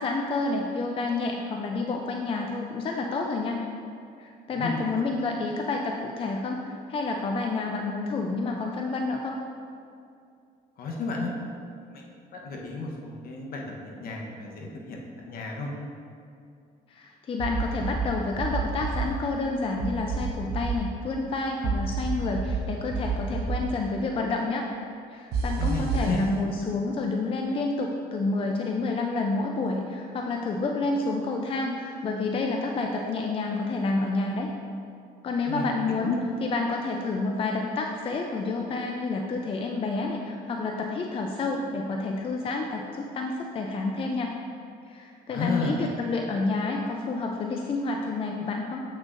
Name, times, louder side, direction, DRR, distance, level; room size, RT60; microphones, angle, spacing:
voice 1, 0.0-3.6 4.2-9.4 16.9-24.7 25.1-34.5 35.2-36.1 36.4-44.3 44.9-48.8, left 3 dB, 35° left, 1 dB, 0.5 m, -29 dB
voice 2, 10.8-11.3 11.9-12.0 12.3-15.0 15.2-15.7 25.6-26.2 35.5-35.6 36.0-36.2 45.3-45.7, left 4 dB, 60° left, 0 dB, 1.1 m, -32 dB
sound 1, 17.4-18.1 18.4-19.0 19.8-20.7 21.6-22.6 22.9-23.6 25.3-26.1, right 6 dB, 75° right, 0.9 m, -28 dB
8.1 x 6.2 x 2.6 m, 2.4 s
cardioid pair, 110°, 17 cm